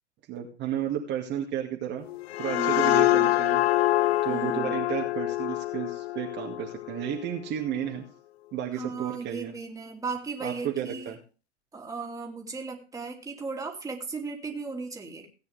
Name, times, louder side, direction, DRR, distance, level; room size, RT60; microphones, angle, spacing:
voice 1, 0.3-2.1 2.4-3.6 4.2-8.1 8.5-9.5 10.4-11.2, right 10 dB, 30° right, 0 dB, 2.1 m, -32 dB
sound 1, 2.1-7.5, left 16 dB, 60° left, 0.6 m, -26 dB
voice 2, 2.5-3.4 4.3-4.8 8.7-11.1 11.7-15.3, right 4 dB, 10° right, 1 dB, 2.9 m, -36 dB
17.0 x 9.2 x 3.5 m, 0.34 s
hypercardioid pair, 105°, 34 cm